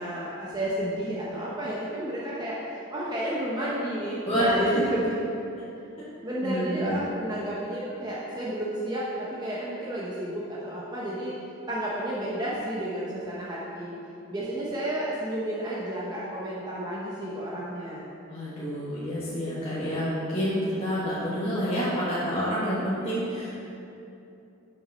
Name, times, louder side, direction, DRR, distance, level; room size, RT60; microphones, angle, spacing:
voice 1, 0.0-5.2 6.2-11.3 11.7-14.0 14.3-18.1, right 1 dB, 20° right, -7 dB, 1.0 m, -31 dB
voice 2, 4.3-4.7 6.4-7.0 18.3-23.6, equal, 25° left, -11 dB, 1.7 m, -28 dB
7.1 x 6.2 x 6.4 m, 2.8 s
head